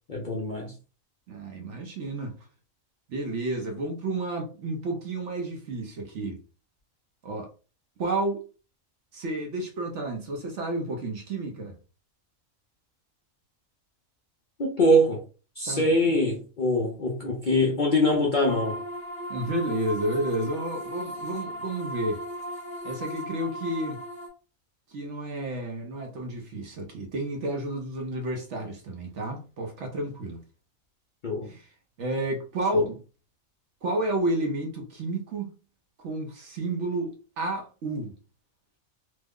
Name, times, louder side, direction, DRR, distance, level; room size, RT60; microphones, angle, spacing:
voice 1, 0.1-0.7 14.6-15.2 15.6-18.8 31.2-31.5 32.7-32.8, left 1 dB, 50° left, 0.6 m, -23 dB
voice 2, 1.3-2.4 3.1-6.4 7.2-7.5 8.0-8.4 9.1-11.7 15.7-16.1 19.3-22.2 22.8-24.0 24.9-30.4 31.5-31.6 32.0-33.0 33.8-35.5 36.0-38.2, right 1 dB, 60° right, 1.0 m, -31 dB
sound 1, 18.5-24.3, right 1 dB, 5° left, 0.9 m, -37 dB
3.1 x 2.0 x 3.5 m
omnidirectional pair, 1.4 m